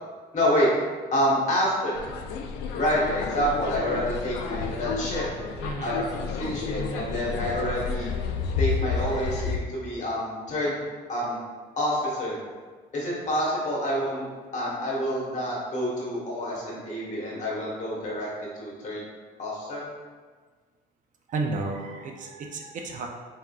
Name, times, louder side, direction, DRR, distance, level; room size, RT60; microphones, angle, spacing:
voice 1, 0.3-0.7 1.1-2.2 2.7-5.3 5.8-8.1 8.6-10.8 11.1-11.4 11.7-12.4 12.9-14.2 14.5-19.0 19.4-19.8, equal, 45° left, -5 dB, 1.4 m, -28 dB
sound 1, 1.9-9.6, left 5 dB, 80° left, 0.4 m, -31 dB
voice 2, 5.6-5.9 21.3-23.1, right 3 dB, 50° right, 2 dB, 0.5 m, -32 dB
4.3 x 3.6 x 2.4 m, 1.5 s
cardioid pair, 110°, 17 cm